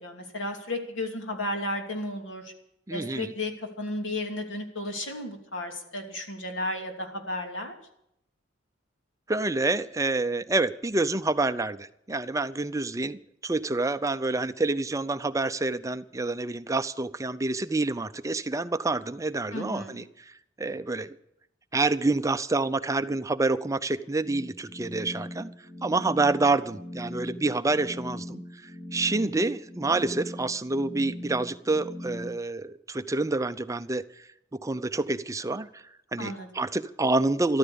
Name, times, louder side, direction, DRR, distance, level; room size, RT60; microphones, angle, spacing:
voice 1, 0.0-2.5 2.9-7.7 19.5-20.0 36.2-36.5, left 1 dB, 90° left, 3 dB, 2.8 m, -33 dB
voice 2, 2.9-3.3 9.3-13.2 13.4-21.2 21.7-25.5 25.8-35.8 36.1-37.6, right 2 dB, 15° right, 12 dB, 0.6 m, -28 dB
sound 1, 24.2-32.3, left 1 dB, 15° left, 2.6 m, -40 dB
14.0 x 13.0 x 7.0 m, 0.76 s
head